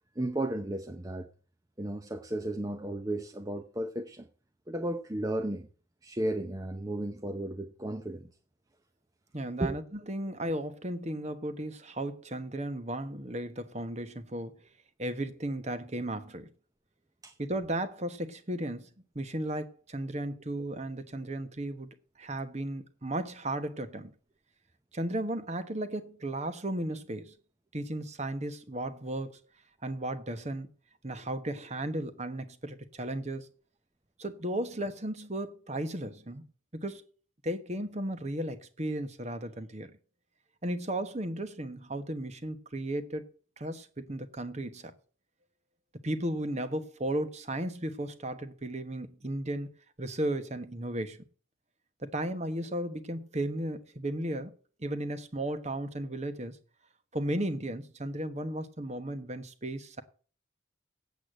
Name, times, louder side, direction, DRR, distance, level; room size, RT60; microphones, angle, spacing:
voice 1, 0.2-1.3 1.8-4.3 4.7-5.7 6.0-8.3 9.6-9.8 17.2-17.3, right 1 dB, 15° right, 0.7 m, -34 dB
voice 2, 9.3-14.5 15.0-16.5 17.4-18.9 19.1-21.9 22.2-24.1 24.9-27.3 27.7-29.4 29.8-30.7 31.0-33.5 34.2-36.4 36.7-37.0 37.4-39.9 40.6-43.3 43.6-44.9 46.0-49.7 50.0-51.2 52.0-54.5 54.8-56.6 57.1-60.0, right 1 dB, 35° right, 1.2 m, -35 dB
8.4 x 8.3 x 7.8 m
head